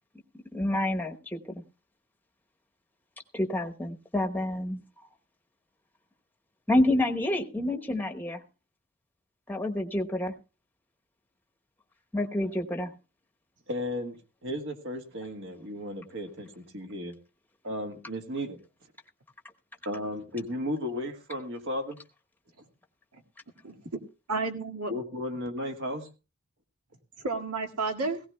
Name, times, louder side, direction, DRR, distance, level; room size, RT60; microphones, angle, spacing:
voice 1, 0.5-1.5 3.3-4.8 6.7-8.4 9.5-10.3 12.1-12.9, left 1 dB, 10° left, 4 dB, 1.0 m, -28 dB
voice 2, 13.7-14.2 14.4-17.1 17.6-18.6 19.8-22.0 24.9-26.1, left 1 dB, 55° right, 6 dB, 1.6 m, -34 dB
voice 3, 23.6-24.0 24.3-24.9 27.2-28.2, right 3 dB, 80° right, 4 dB, 2.0 m, -31 dB
18.0 x 16.5 x 2.2 m, 0.30 s
head